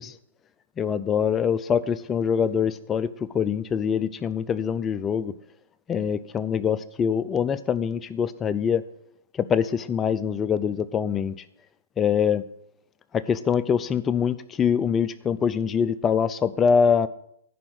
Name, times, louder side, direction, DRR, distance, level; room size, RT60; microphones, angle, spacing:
voice 1, 0.8-3.1 3.3-5.3 5.9-8.8 9.4-11.3 12.0-12.4 13.1-17.1, left 7 dB, 20° left, 15 dB, 0.4 m, -24 dB
11.0 x 4.9 x 7.8 m, 0.72 s
hypercardioid pair, 135°, 0 cm